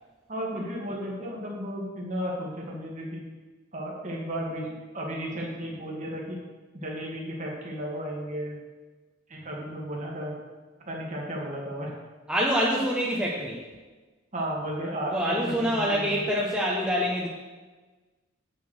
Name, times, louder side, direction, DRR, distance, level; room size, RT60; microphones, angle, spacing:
voice 1, 0.3-3.3 3.7-4.7 4.9-6.4 6.7-8.6 9.3-10.3 10.9-11.9 14.3-16.3, equal, 40° right, -2 dB, 2.0 m, -34 dB
voice 2, 12.3-13.6 15.1-17.3, equal, 5° right, -4 dB, 1.0 m, -26 dB
8.5 x 7.1 x 6.5 m, 1.3 s
head